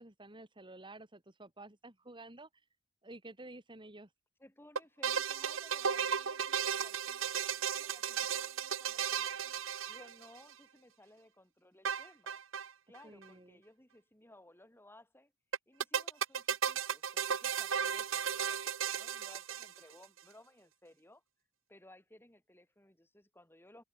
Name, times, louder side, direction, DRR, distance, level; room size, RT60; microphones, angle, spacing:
voice 1, 0.0-2.5 3.0-4.1 13.0-13.6, right 2 dB, 25° right, 3.2 m, -51 dB
voice 2, 4.4-9.6 9.9-12.4 12.9-15.3 15.7-21.2 21.7-23.8, left 1 dB, 10° left, 6.4 m, -60 dB
sound 1, 4.8-10.5 11.9-12.7 13.0-13.1 13.2-13.3 15.5-20.0, right 7 dB, 75° right, 1.2 m, -35 dB
open air
head